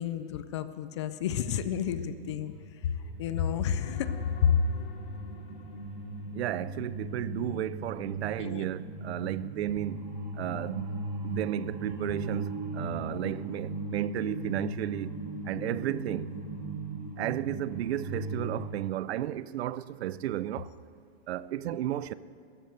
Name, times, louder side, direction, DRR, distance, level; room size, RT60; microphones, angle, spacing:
voice 1, 0.0-2.5 2.8-2.9 3.2-4.1 4.4-4.6 8.4-8.7, left 8 dB, 30° left, 0.4 m, -29 dB
sound 1, 2.0-18.6, right 2 dB, 35° right, 3.7 m, -38 dB
sound 2, 3.6-7.5 12.0-12.2, left 4 dB, 65° left, 2.8 m, -50 dB
voice 2, 6.3-15.1 15.4-16.3 17.2-20.7 21.3-22.1, right 12 dB, 80° right, 0.6 m, -33 dB
14.0 x 11.0 x 8.0 m
supercardioid pair, 175°, 31 cm